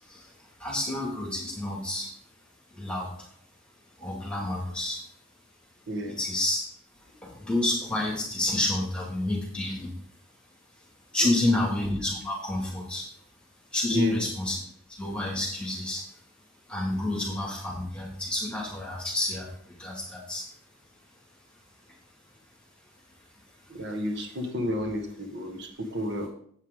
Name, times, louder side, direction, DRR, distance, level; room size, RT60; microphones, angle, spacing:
voice 1, 0.6-2.1 2.7-3.1 4.0-5.0 6.2-6.7 7.2-9.9 11.1-13.0 13.7-14.6 15.0-16.0 16.7-20.4, left 1 dB, 5° left, -3 dB, 2.2 m, -29 dB
voice 2, 5.9-6.2 11.2-11.6 13.9-14.2 23.7-26.3, equal, 65° right, 3 dB, 1.6 m, -32 dB
9.3 x 8.2 x 3.7 m, 0.62 s
head